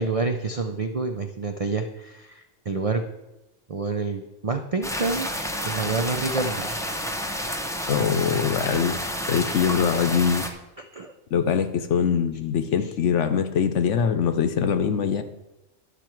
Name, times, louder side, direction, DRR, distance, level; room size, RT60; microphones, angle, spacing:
voice 1, 0.0-3.0 3.7-5.3 5.6-6.8 10.8-11.1, right 3 dB, 60° right, 5 dB, 0.3 m, -28 dB
sound 1, 4.8-10.5, equal, 5° left, 0.5 m, -30 dB
voice 2, 7.9-9.0 9.3-10.5 11.3-15.2, left 7 dB, 65° left, 9 dB, 1.0 m, -23 dB
11.5 x 6.7 x 4.5 m, 0.96 s
omnidirectional pair, 1.4 m